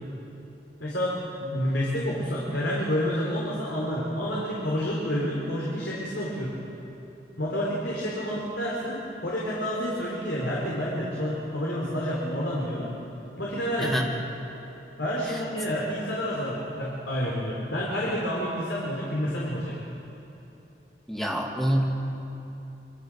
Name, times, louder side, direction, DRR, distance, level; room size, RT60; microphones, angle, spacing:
voice 1, 0.8-6.6 7.4-12.9 13.4-14.0 15.0-19.8, equal, 85° left, -4 dB, 4.2 m, -29 dB
voice 2, 21.1-21.9, equal, ahead, -1 dB, 2.5 m, -26 dB
26.0 x 24.5 x 6.4 m, 3.0 s
head